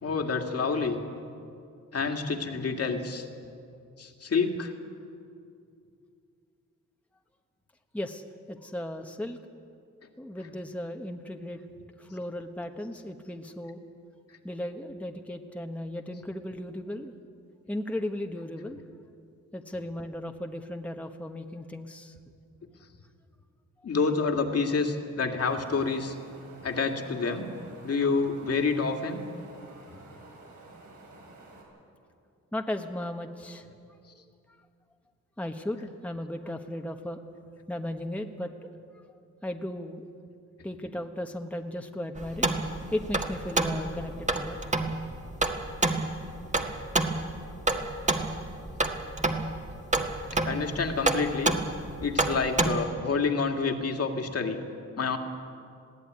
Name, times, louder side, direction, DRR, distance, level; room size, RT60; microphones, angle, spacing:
voice 1, 0.0-1.0 1.9-3.3 4.0-4.7 10.4-10.5 23.8-26.1 26.6-27.5 27.8-29.2 29.9-30.0 48.4-48.5 50.4-51.6 52.0-54.6 55.0-55.2, left 4 dB, 50° left, 4 dB, 2.3 m, -28 dB
voice 2, 7.9-9.4 10.2-11.6 12.0-13.8 14.4-17.1 17.7-18.8 19.5-22.2 29.7-30.0 32.5-33.7 35.4-37.2 37.7-38.5 38.9-39.0 39.4-40.0 40.6-42.5 42.9-44.6, left 1 dB, 5° left, 4 dB, 1.2 m, -36 dB
Wind, 25.4-31.6, right 2 dB, 75° right, 5.8 m, -51 dB
sound 1, 42.2-52.7, right 2 dB, 25° right, 1.7 m, -29 dB
20.5 x 15.5 x 9.6 m, 2.5 s
cardioid pair, 95°, 30 cm